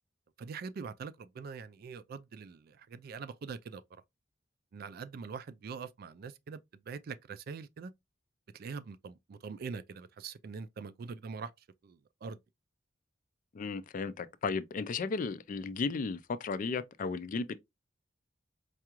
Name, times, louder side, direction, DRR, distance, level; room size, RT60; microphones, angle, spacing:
voice 1, 0.4-4.0 4.7-6.6 6.9-7.9 8.5-11.5 11.8-12.4, right 5 dB, 55° right, 0.3 m, -43 dB
voice 2, 13.5-17.6, left 4 dB, 45° left, 0.4 m, -35 dB
4.6 x 2.4 x 2.9 m
head